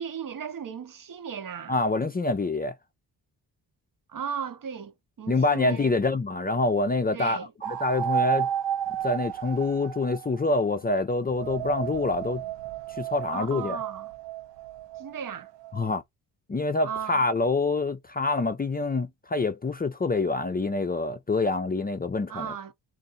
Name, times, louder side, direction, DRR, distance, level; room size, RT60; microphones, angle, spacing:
voice 1, 0.0-1.8 4.1-6.0 7.1-7.5 13.3-14.1 15.0-15.5 16.8-17.3 22.3-22.7, right 7 dB, 50° right, 0.8 m, -36 dB
voice 2, 1.7-2.7 5.3-7.4 7.7-8.5 9.0-12.4 13.0-13.8 15.7-16.0 16.5-22.5, left 3 dB, 20° left, 0.5 m, -26 dB
sound 1, 7.6-10.8 11.3-15.9, right 10 dB, 80° right, 0.6 m, -32 dB
2.6 x 2.6 x 4.0 m
cardioid pair, 70°, 43 cm